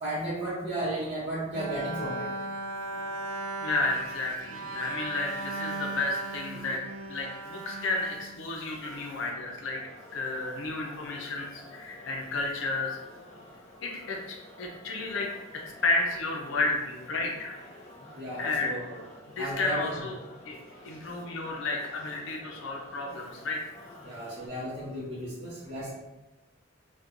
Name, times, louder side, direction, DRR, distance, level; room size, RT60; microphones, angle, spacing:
voice 1, 0.0-2.3 18.1-19.0 19.4-20.1 24.0-25.9, right 1 dB, 35° right, -10 dB, 0.8 m, -34 dB
Bowed string instrument, 1.5-8.9, right 2 dB, 70° right, 0.3 m, -37 dB
voice 2, 3.6-6.8 7.1-9.8 10.1-13.0 13.8-15.3 15.5-17.5 18.4-18.7 19.3-20.2 20.5-20.6 20.8-23.6, left 3 dB, 70° left, 0 dB, 0.5 m, -32 dB
sound 1, 8.6-24.5, left 1 dB, 35° left, 0.7 m, -50 dB
4.3 x 2.2 x 2.4 m, 1.0 s
head